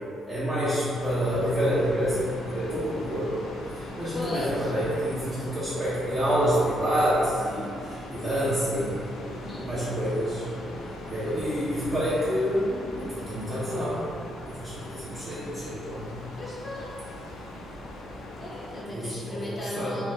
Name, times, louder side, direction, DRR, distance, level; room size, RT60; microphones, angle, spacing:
voice 1, 0.0-3.4 3.8-9.1 9.6-10.5 11.1-14.0 14.4-16.1 18.9-19.9, equal, 35° right, -11 dB, 0.7 m, -28 dB
sound 1, 0.9-18.8, left 1 dB, 90° left, 0.4 m, -40 dB
voice 2, 4.1-4.7 9.3-9.7 10.7-10.9 16.3-17.0 18.3-20.1, left 1 dB, 35° left, -6 dB, 0.7 m, -36 dB
2.6 x 2.4 x 3.4 m, 2.6 s
cardioid pair, 90°, 0 cm